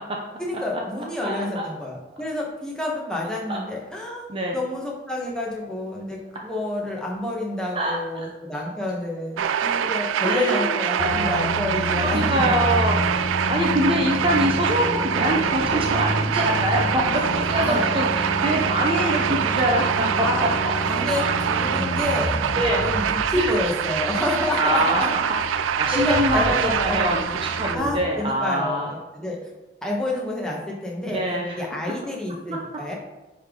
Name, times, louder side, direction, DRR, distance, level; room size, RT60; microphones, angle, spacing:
voice 1, 0.4-4.2 4.5-12.6 16.9-17.2 17.6-17.8 20.2-20.5 20.9-22.4 22.8-25.1 25.9-27.1 27.7-29.4 29.8-31.2 31.6-32.9, left 1 dB, 5° left, -3 dB, 1.1 m, -28 dB
voice 2, 1.2-1.7 3.5-3.6 4.3-4.6 7.7-8.3 10.2-11.5 12.0-20.8 21.2-21.4 22.6-22.9 23.3-23.5 24.6-25.0 25.5-28.9 31.0-31.6 32.5-32.6, equal, 30° right, -1 dB, 0.7 m, -25 dB
sound 1, 9.4-27.8, right 8 dB, 85° right, 0.3 m, -25 dB
sound 2, 11.0-27.9, left 1 dB, 45° left, 0.9 m, -30 dB
9.7 x 3.5 x 3.8 m, 1.1 s
head